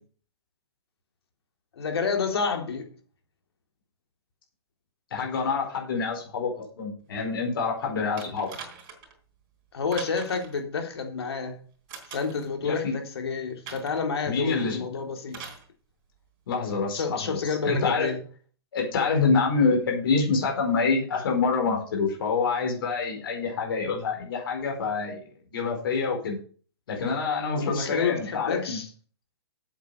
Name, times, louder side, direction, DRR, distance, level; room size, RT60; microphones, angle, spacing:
voice 1, 1.8-2.9 9.7-11.6 12.1-15.4 16.9-18.2 27.6-28.9, left 5 dB, 75° left, 3.5 m, -29 dB
voice 2, 5.1-8.5 12.6-13.0 14.3-14.8 16.5-17.4 17.6-18.1 18.7-25.2 25.5-26.4 26.9-28.8, left 4 dB, 60° left, 4.6 m, -26 dB
sound 1, 8.2-9.2 9.9-10.6 11.9-12.5 13.7-14.1 15.3-15.7 16.7-16.8, right 6 dB, 35° right, 3.6 m, -42 dB
8.3 x 7.6 x 6.8 m
hypercardioid pair, 155°, 14 cm